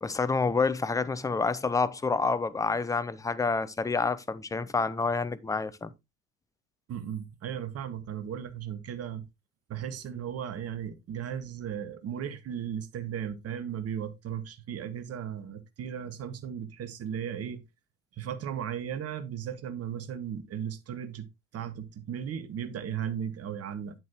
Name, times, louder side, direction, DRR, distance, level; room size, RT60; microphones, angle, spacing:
voice 1, 0.0-5.9, left 4 dB, 10° left, 0.6 m, -28 dB
voice 2, 6.9-9.2 9.7-17.6 18.2-21.3 21.5-23.9, right 8 dB, 35° right, 1.4 m, -36 dB
8.8 x 7.7 x 3.0 m
figure-of-eight pair, 65°, 43 cm